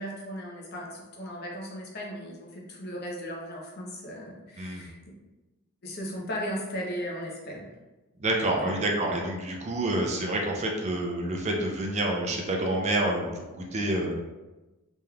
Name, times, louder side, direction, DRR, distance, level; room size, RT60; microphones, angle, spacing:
voice 1, 0.0-4.9 5.8-7.7 8.6-8.8, equal, 50° left, -2 dB, 0.7 m, -36 dB
voice 2, 8.2-14.1, right 1 dB, 30° right, 0 dB, 0.4 m, -28 dB
3.5 x 3.0 x 2.3 m, 1.1 s
head